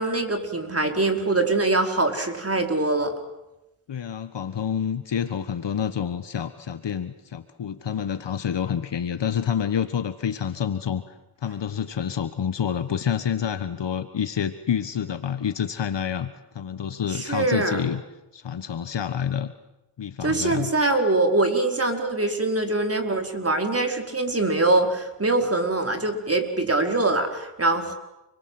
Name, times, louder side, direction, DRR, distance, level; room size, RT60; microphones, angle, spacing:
voice 1, 0.0-3.2 17.1-17.8 20.2-27.9, right 2 dB, 30° right, 4 dB, 5.1 m, -23 dB
voice 2, 3.9-11.1 11.4-18.0 18.3-19.5 20.0-20.7, left 8 dB, 55° left, 10 dB, 1.5 m, -28 dB
30.0 x 23.0 x 7.9 m, 0.94 s
cardioid pair, 65°, 49 cm